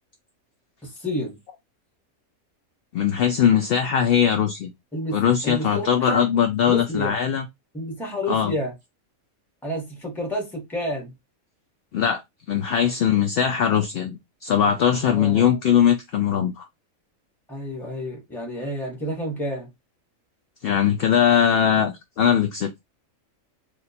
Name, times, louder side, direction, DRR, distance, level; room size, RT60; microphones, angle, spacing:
voice 1, 0.8-1.4 4.9-6.3 6.7-7.2 7.7-8.7 9.6-11.1 15.0-15.6 17.5-19.7, equal, ahead, 1.1 m, -30 dB
voice 2, 2.9-4.7 5.1-7.4 8.3-8.5 11.9-12.2 12.5-16.7 20.6-22.7, left 8 dB, 65° left, 0.6 m, -20 dB
3.0 x 2.6 x 4.1 m
omnidirectional pair, 1.4 m